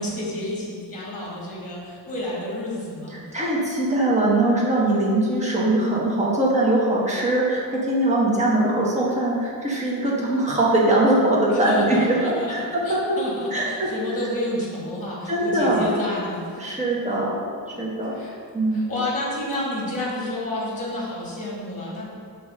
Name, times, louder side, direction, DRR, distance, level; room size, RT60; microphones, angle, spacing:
voice 1, 0.0-3.2 11.5-12.5 12.8-16.4 18.1-18.3 18.7-22.0, left 1 dB, 15° left, -5 dB, 1.9 m, -30 dB
voice 2, 3.1-13.2 13.5-13.9 15.3-16.0 16.6-18.2 18.5-18.8, right 1 dB, 15° right, -5 dB, 1.2 m, -22 dB
7.8 x 3.2 x 6.4 m, 2.3 s
wide cardioid pair, 175°, 43 cm